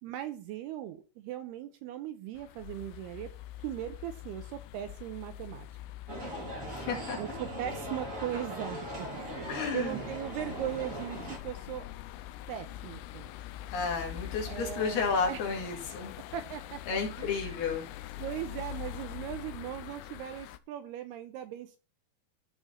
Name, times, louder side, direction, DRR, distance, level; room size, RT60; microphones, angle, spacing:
voice 1, 0.0-3.3 3.6-5.7 7.2-9.1 9.4-11.9 12.5-13.3 14.5-15.4 16.3-17.7 18.2-21.8, right 12 dB, 85° right, 8 dB, 2.4 m, -39 dB
sound 1, 2.4-20.6, left 14 dB, 85° left, 2.8 m, -44 dB
sound 2, 6.1-11.4, right 1 dB, 20° right, 2.8 m, -40 dB
voice 2, 6.6-7.2 9.5-10.0 13.7-16.1 16.9-17.9, left 5 dB, 60° left, 1 dB, 3.8 m, -32 dB
14.0 x 4.9 x 4.2 m, 0.33 s
omnidirectional pair, 5.3 m